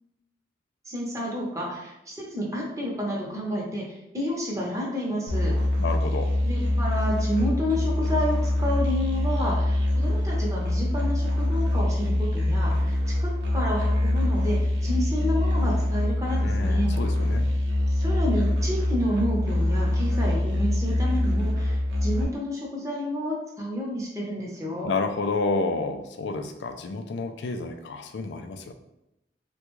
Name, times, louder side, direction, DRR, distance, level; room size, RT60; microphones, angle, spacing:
voice 1, 0.9-5.5 6.4-16.9 17.9-24.9, equal, 20° right, -3 dB, 0.8 m, -30 dB
Musical instrument, 5.3-22.2, left 1 dB, 85° right, 0.7 m, -24 dB
voice 2, 5.8-6.3 16.4-17.5 24.8-28.7, left 3 dB, 75° left, 7 dB, 0.4 m, -30 dB
3.4 x 2.2 x 3.0 m, 0.88 s
head